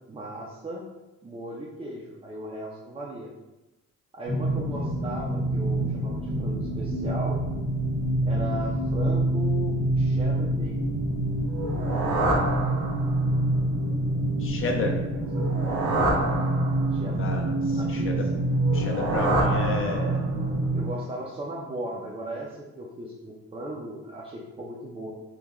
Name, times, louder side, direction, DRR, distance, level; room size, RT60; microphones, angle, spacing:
voice 1, 0.1-0.8 1.2-3.3 4.1-7.4 8.2-10.7 15.1-15.4 16.0-16.2 16.9-17.3 17.7-18.3 20.7-25.1, right 1 dB, 20° right, -3 dB, 0.4 m, -37 dB
sound 1, 4.2-20.8, right 1 dB, 90° right, 1.2 m, -26 dB
sound 2, 11.5-13.4 15.3-17.1 18.6-20.4, right 2 dB, 70° right, 0.8 m, -28 dB
voice 2, 14.4-15.0 17.1-18.3 18.7-20.2, left 3 dB, 45° left, 2 dB, 0.5 m, -31 dB
3.0 x 2.1 x 3.5 m, 1.1 s
cardioid pair, 120°, 30 cm